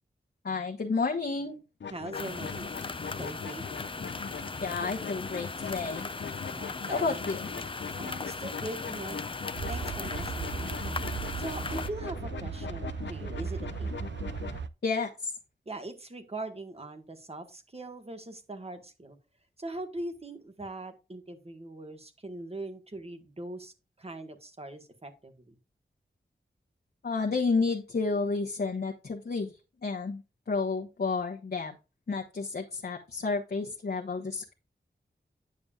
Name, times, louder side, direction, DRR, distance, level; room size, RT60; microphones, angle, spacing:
voice 1, 0.4-1.6 4.6-6.1 6.9-7.4 8.2-8.3 14.8-15.3 27.0-31.7 32.1-34.5, left 4 dB, 60° left, 0 dB, 1.1 m, -31 dB
sound 1, 1.8-14.6, left 6 dB, 75° left, 0.7 m, -41 dB
voice 2, 1.9-2.7 3.2-3.6 6.5-7.1 8.0-9.2 9.7-11.0 11.4-13.9 15.6-19.2 19.6-25.5, right 2 dB, 35° right, 7 dB, 1.5 m, -41 dB
sound 2, 2.1-11.9, left 3 dB, 30° left, 0.5 m, -38 dB
sound 3, 9.6-14.7, right 6 dB, 80° right, 0.5 m, -37 dB
9.5 x 7.0 x 2.4 m, 0.30 s
wide cardioid pair, 75°, 19 cm